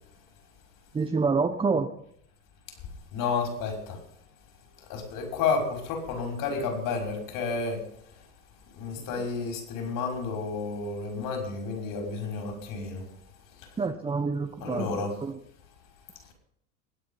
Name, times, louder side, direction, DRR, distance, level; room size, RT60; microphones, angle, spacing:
voice 1, 0.9-1.9 13.8-15.3, right 4 dB, 15° right, 6 dB, 0.9 m, -27 dB
voice 2, 3.1-4.0 4.9-7.8 8.7-13.0 14.6-15.1, left 4 dB, 55° left, 3 dB, 6.1 m, -31 dB
21.0 x 8.8 x 5.8 m, 0.72 s
supercardioid pair, 120°, 42 cm